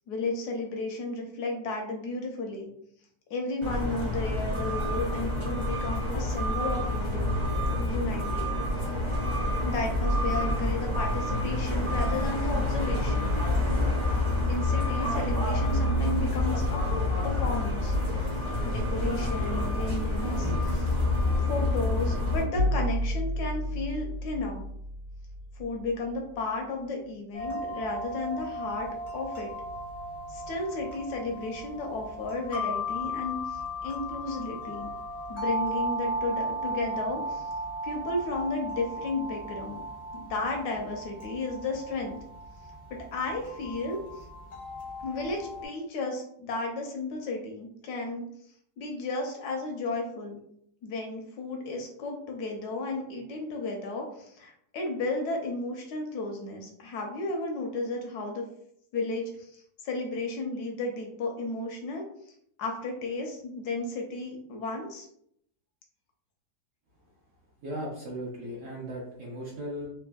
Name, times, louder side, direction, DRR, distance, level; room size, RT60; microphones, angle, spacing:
voice 1, 0.1-2.7 3.3-7.4 7.8-8.5 9.6-13.4 14.5-16.8 17.2-18.0 18.6-20.9 21.5-24.6 25.6-28.9 29.1-29.5 30.3-34.9 35.3-37.5 37.8-39.8 40.1-42.2 42.9-44.3 45.0-48.2 48.8-50.4 50.8-58.4 58.9-62.0 62.6-65.1, left 2 dB, 75° left, 2 dB, 1.1 m, -33 dB
sound 1, 3.6-22.4, left 1 dB, 35° right, 0.5 m, -27 dB
sound 2, 22.5-26.4, equal, 85° right, 1.2 m, -31 dB
sound 3, 27.3-45.7, equal, 45° left, 0.5 m, -36 dB
voice 2, 67.6-69.9, equal, 65° right, -4 dB, 0.8 m, -37 dB
3.4 x 2.2 x 2.2 m, 0.71 s
omnidirectional pair, 1.8 m